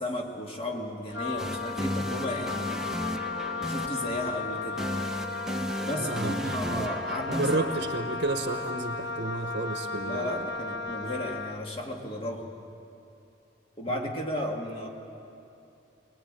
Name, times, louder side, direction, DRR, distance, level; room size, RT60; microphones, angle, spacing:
voice 1, 0.0-2.9 3.6-4.9 5.8-7.7 10.0-12.5 13.8-14.9, left 1 dB, 30° left, 1 dB, 2.2 m, -34 dB
Wind instrument woodwind instrument, 1.1-11.7, left 4 dB, 75° left, 0.7 m, -35 dB
sound 1, 1.4-9.3, equal, 5° right, 0.8 m, -35 dB
voice 2, 5.9-6.9 7.3-10.3, right 3 dB, 60° right, 6 dB, 0.9 m, -31 dB
21.0 x 20.0 x 8.9 m, 2.8 s
head